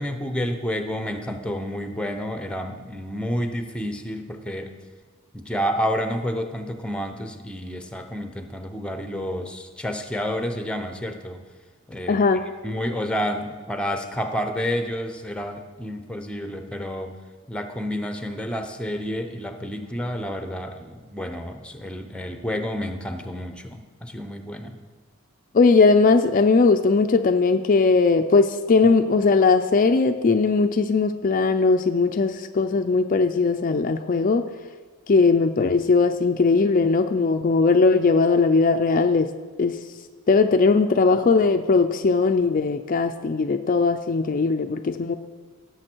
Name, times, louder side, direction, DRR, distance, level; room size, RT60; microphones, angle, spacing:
voice 1, 0.0-4.7 5.3-11.4 11.9-12.2 12.6-17.1 17.5-24.8, equal, 5° left, 7 dB, 0.7 m, -30 dB
voice 2, 12.1-12.5 25.5-34.5 35.1-39.3 39.6-39.8 40.3-45.2, left 4 dB, 40° left, 7 dB, 0.4 m, -19 dB
17.0 x 6.9 x 4.5 m, 1.5 s
head